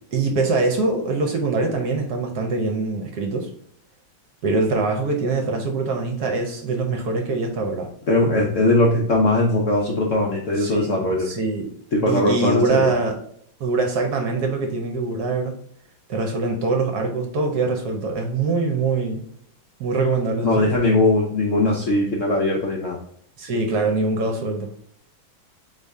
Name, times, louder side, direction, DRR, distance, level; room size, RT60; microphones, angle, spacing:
voice 1, 0.1-3.5 4.4-7.9 10.6-10.9 11.2-11.7 12.1-13.2 13.6-15.5 16.1-19.2 19.8-20.7 23.4-24.7, right 3 dB, 65° right, 3 dB, 1.1 m, -23 dB
voice 2, 8.1-11.3 11.9-12.9 20.4-23.0, left 2 dB, 65° left, -2 dB, 0.8 m, -20 dB
4.1 x 3.3 x 3.5 m, 0.68 s
omnidirectional pair, 2.1 m